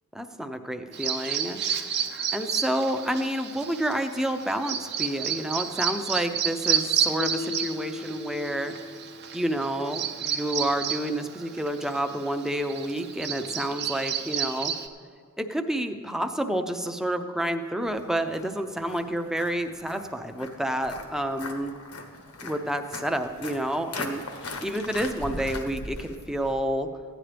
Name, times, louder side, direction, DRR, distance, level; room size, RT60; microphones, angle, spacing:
voice 1, 0.1-1.6 2.3-8.8 9.3-14.7 15.4-21.7 22.4-24.2 24.6-26.9, right 1 dB, ahead, 6 dB, 0.5 m, -29 dB
Bird vocalization bird call bird song, 0.9-14.9, right 8 dB, 50° right, 0.7 m, -31 dB
Keyboard (musical), 7.2-10.0, left 5 dB, 60° left, 0.5 m, -38 dB
Walk footsteps, 17.9-26.5, left 2 dB, 80° left, 1.2 m, -40 dB
15.5 x 10.0 x 3.4 m, 2.2 s
head